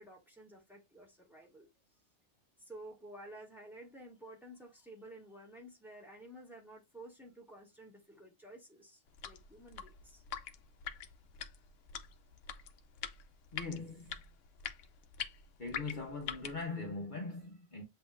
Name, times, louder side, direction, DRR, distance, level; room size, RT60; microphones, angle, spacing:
voice 1, 0.0-1.7 2.6-10.2, right 1 dB, ahead, 1.8 m, -52 dB
sound 1, 9.1-16.7, left 8 dB, 85° left, 1.0 m, -45 dB
voice 2, 13.5-14.1 15.6-17.8, left 3 dB, 45° left, 0.9 m, -41 dB
7.6 x 2.8 x 2.4 m
omnidirectional pair, 1.2 m